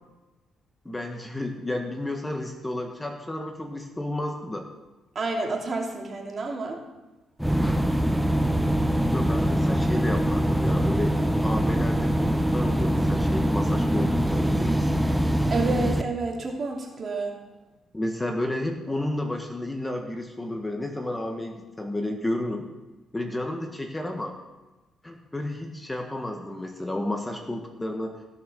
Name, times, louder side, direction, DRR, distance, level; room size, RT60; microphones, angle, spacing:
voice 1, 0.8-4.7 9.0-15.1 17.9-22.7 23.1-24.4 25.0-28.2, left 1 dB, 15° left, 3 dB, 1.5 m, -31 dB
voice 2, 5.1-6.8 15.5-17.4, right 3 dB, 40° right, 0 dB, 3.0 m, -29 dB
sound 1, 7.4-16.0, equal, 5° right, 0.8 m, -23 dB
16.5 x 6.5 x 6.4 m, 1.1 s
cardioid pair, 90°, 0 cm